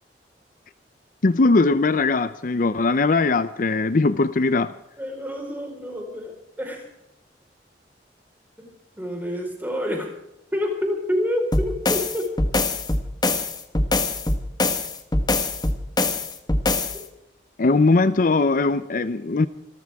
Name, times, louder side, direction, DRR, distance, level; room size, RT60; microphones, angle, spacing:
voice 1, 1.2-4.7 17.6-19.5, left 3 dB, 50° left, 0.6 m, -20 dB
voice 2, 5.0-6.8 8.6-8.7 9.0-10.1 10.5-12.3 16.9-17.0, left 1 dB, 10° right, 4.5 m, -28 dB
sound 1, 11.5-17.0, left 2 dB, 25° left, 1.4 m, -23 dB
26.5 x 14.0 x 3.6 m
head